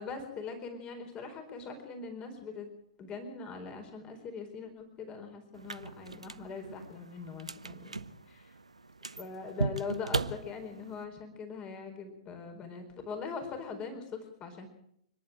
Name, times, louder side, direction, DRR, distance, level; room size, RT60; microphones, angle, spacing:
voice 1, 0.0-2.7 3.0-8.0 8.3-8.5 9.0-14.7, left 5 dB, 25° left, 6 dB, 4.4 m, -41 dB
sound 1, 5.5-11.0, right 3 dB, 85° right, 1.0 m, -38 dB
29.0 x 11.0 x 9.1 m, 0.75 s
figure-of-eight pair, 105°, 3 cm